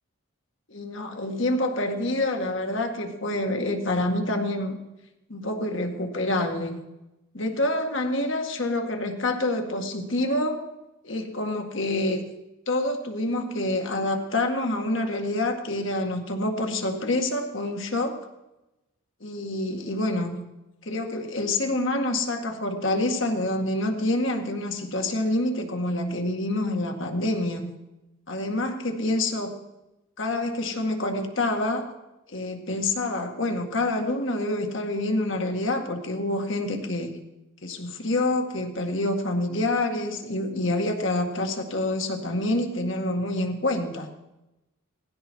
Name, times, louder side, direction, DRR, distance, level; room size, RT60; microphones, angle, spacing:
voice 1, 0.7-4.8 5.3-6.8 7.3-10.7 11.0-12.2 12.7-18.2 19.2-20.4 20.8-27.7 28.3-29.6 30.2-31.9 32.3-37.1 37.6-44.1, left 1 dB, 60° left, 4 dB, 2.0 m, -27 dB
19.0 x 15.5 x 4.7 m, 0.98 s
head